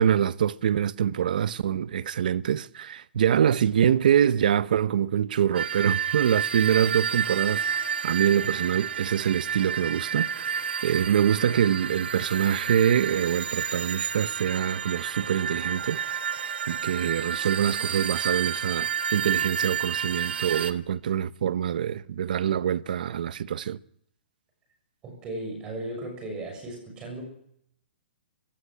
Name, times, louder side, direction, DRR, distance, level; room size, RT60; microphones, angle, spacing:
voice 1, 0.0-16.0 16.3-23.8, right 9 dB, 55° right, 0.8 m, -25 dB
sound 1, 5.5-20.7, right 7 dB, 85° right, 1.6 m, -30 dB
voice 2, 25.0-27.2, right 1 dB, 15° right, 6.9 m, -36 dB
22.0 x 16.5 x 9.8 m
hypercardioid pair, 175°, 6 cm